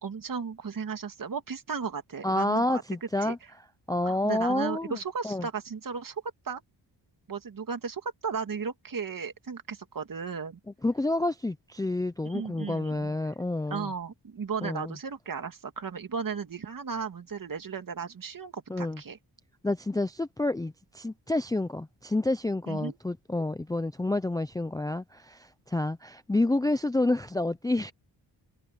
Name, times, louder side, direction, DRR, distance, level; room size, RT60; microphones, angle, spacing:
voice 1, 0.0-2.8 3.2-3.3 4.0-6.6 7.3-10.6 12.2-13.1 13.7-19.2 22.7-23.0, right 6 dB, 50° right, 2.4 m, -35 dB
voice 2, 2.2-3.4 3.9-5.0 5.2-5.5 10.8-13.9 14.6-14.9 18.7-19.0 19.6-27.9, left 2 dB, 10° left, 0.5 m, -29 dB
wide cardioid pair, 115°, 43 cm